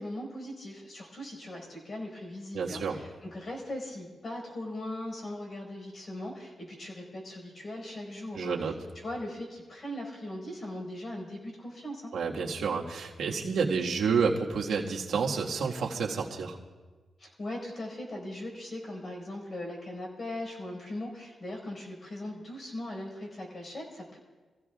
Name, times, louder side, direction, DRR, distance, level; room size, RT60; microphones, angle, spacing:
voice 1, 0.0-12.1 17.2-24.2, left 1 dB, 45° left, 0 dB, 4.8 m, -39 dB
voice 2, 2.5-3.0 8.3-8.7 12.1-16.6, right 5 dB, 85° right, -2 dB, 1.6 m, -29 dB
26.5 x 15.5 x 2.4 m, 1.3 s
cardioid pair, 95°, 0 cm